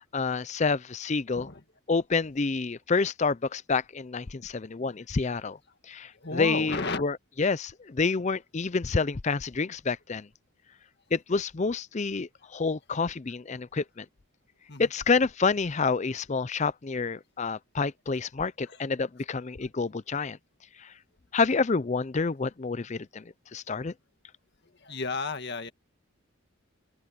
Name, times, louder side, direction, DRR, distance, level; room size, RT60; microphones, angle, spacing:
voice 1, 0.1-1.5 1.9-5.6 5.9-10.3 11.1-14.1 14.8-20.4 20.8-20.9 21.3-23.9, left 4 dB, 30° left, 0.5 m, -28 dB
voice 2, 6.2-7.0 14.7-14.9 18.7-18.8 24.8-25.7, left 3 dB, 50° left, 1.9 m, -33 dB
open air
head